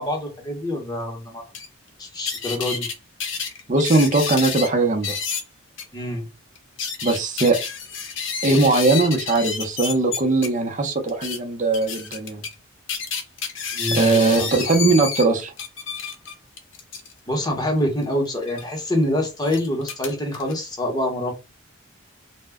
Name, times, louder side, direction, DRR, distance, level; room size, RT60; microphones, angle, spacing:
voice 1, 0.0-1.4 2.0-2.9 5.9-6.3 13.7-14.5 17.3-21.3, left 1 dB, 20° left, 0.8 m, -25 dB
sound 1, 1.5-1.7 2.3-2.9 3.2-4.7 5.0-5.4 5.8-5.9 6.6-10.5 11.1-11.4 11.7-12.5 12.9-15.3 15.6-17.1 18.4-18.6 19.4-20.5, left 6 dB, 60° left, 0.7 m, -29 dB
voice 2, 3.7-5.2 7.0-7.6 8.4-12.4 13.9-15.5, right 3 dB, 35° right, 0.6 m, -20 dB
2.1 x 2.1 x 3.4 m
head